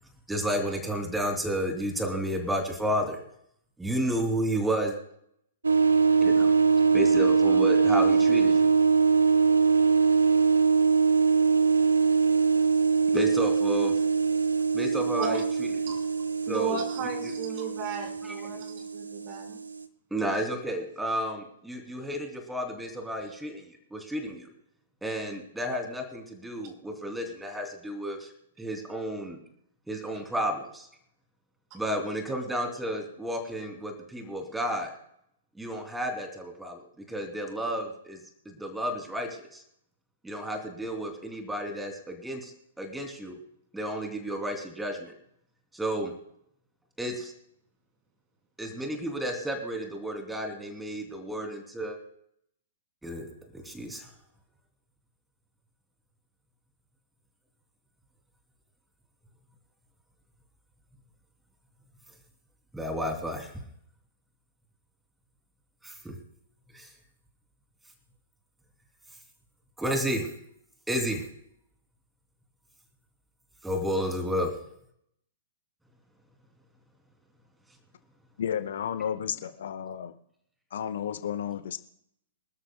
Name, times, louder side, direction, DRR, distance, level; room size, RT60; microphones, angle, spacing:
voice 1, 0.3-3.2 3.8-5.0 6.2-6.5 6.9-8.7 13.1-14.0 14.7-15.7 16.5-16.8 17.2-17.3 18.2-18.3 20.1-24.5 25.0-28.3 28.6-29.4 29.9-30.9 31.7-34.9 35.5-39.6 40.2-43.4 43.7-45.1 45.7-46.1 47.0-47.3 48.6-52.0 53.0-54.1 62.7-63.5 65.8-66.1 66.7-66.9 69.8-70.3 70.9-71.2 73.6-74.5, equal, 5° right, 3 dB, 2.8 m, -32 dB
sound 1, 5.6-19.8, right 5 dB, 75° right, 1.1 m, -23 dB
voice 2, 16.5-19.6 23.2-23.3, right 5 dB, 35° right, 2 dB, 4.7 m, -35 dB
voice 3, 78.4-80.1 80.7-81.8, left 8 dB, 60° left, 11 dB, 0.9 m, -32 dB
26.0 x 13.0 x 2.2 m, 0.71 s
figure-of-eight pair, 110°, 0 cm